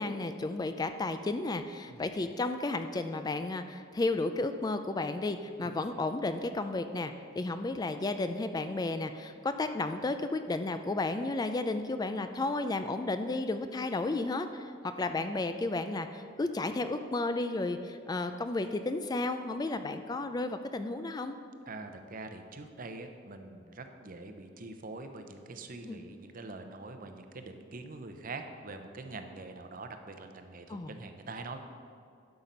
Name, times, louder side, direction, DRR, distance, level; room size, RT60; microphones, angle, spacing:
voice 1, 0.0-21.4 25.9-26.0 30.7-30.9, left 2 dB, 20° left, 9 dB, 0.3 m, -33 dB
voice 2, 21.7-31.6, right 3 dB, 45° right, 7 dB, 0.7 m, -44 dB
11.5 x 5.8 x 5.3 m, 2.4 s
head